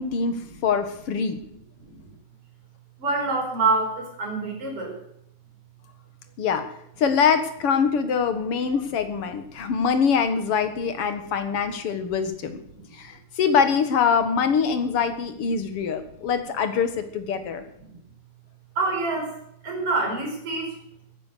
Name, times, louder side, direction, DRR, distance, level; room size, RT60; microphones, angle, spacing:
voice 1, 0.0-1.4 6.4-6.6 7.0-12.6 12.9-17.6, left 6 dB, 50° left, 9 dB, 2.0 m, -24 dB
voice 2, 1.8-2.1 3.0-5.0 8.7-8.8 12.7-12.8 17.8-18.0 18.8-19.3 19.6-20.7, right 3 dB, 40° right, 1 dB, 5.7 m, -26 dB
16.5 x 10.5 x 6.6 m, 0.73 s
omnidirectional pair, 4.0 m